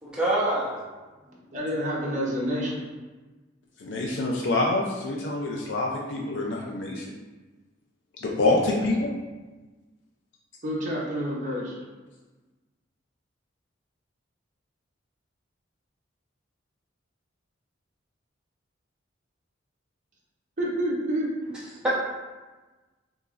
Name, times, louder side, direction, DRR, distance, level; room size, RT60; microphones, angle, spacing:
voice 1, 0.0-0.8 21.8-21.9, right 1 dB, 5° right, -8 dB, 0.9 m, -25 dB
voice 2, 1.5-2.8 10.6-11.9 20.6-21.5, equal, 40° right, -6 dB, 0.9 m, -28 dB
voice 3, 3.8-7.2 8.2-9.1, left 2 dB, 65° left, -2 dB, 0.4 m, -26 dB
4.6 x 3.0 x 2.4 m, 1.2 s
head